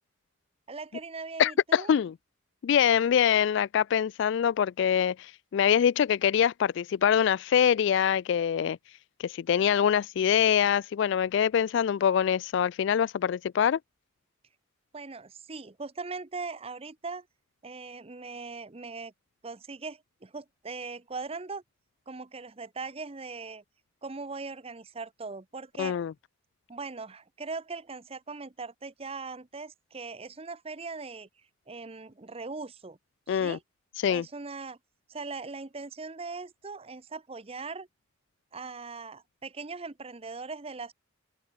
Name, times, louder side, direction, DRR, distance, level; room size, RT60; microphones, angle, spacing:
voice 1, 0.7-2.0 14.9-17.3 17.6-19.1 19.4-21.6 22.1-23.6 24.0-26.0 26.7-31.3 31.7-33.0 33.3-33.6 34.1-34.8 35.1-37.9 38.5-40.9, right 4 dB, 30° right, 0.8 m, -40 dB
voice 2, 1.4-2.1 2.6-8.8 9.2-13.8 25.8-26.1 33.3-33.6 34.0-34.2, left 8 dB, 60° left, 0.3 m, -24 dB
open air
head